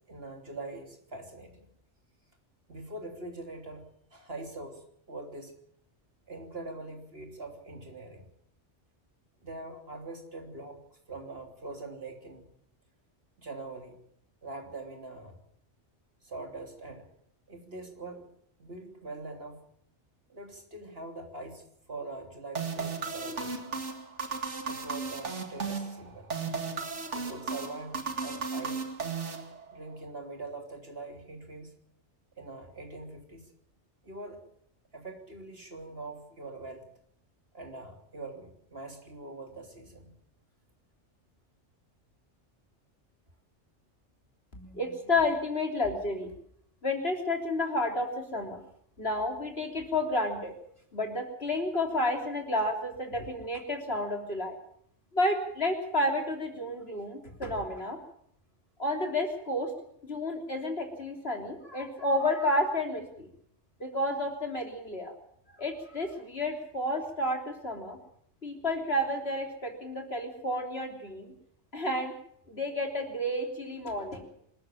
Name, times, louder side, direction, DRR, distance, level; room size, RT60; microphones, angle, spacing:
voice 1, 0.1-1.7 2.7-5.6 6.3-8.3 9.4-10.8 11.1-12.5 13.4-14.0 14.4-15.3 16.2-17.0 17.5-18.3 18.6-19.6 20.3-23.8 24.6-26.3 27.1-28.8 29.7-31.7 32.4-33.5 34.0-34.4 34.9-36.9 37.5-40.2, right 2 dB, 60° right, 3 dB, 3.6 m, -43 dB
sound 1, 22.6-29.9, right 5 dB, 90° right, 2.5 m, -35 dB
voice 2, 44.5-46.3 46.8-48.6 49.0-50.5 50.9-54.6 55.1-58.0 58.8-59.7 60.0-63.3 63.8-65.1 65.6-68.0 68.4-71.3 71.7-72.1 72.5-74.3, left 1 dB, 60° left, 3 dB, 3.7 m, -31 dB
26.0 x 13.5 x 7.4 m, 0.68 s
omnidirectional pair, 1.2 m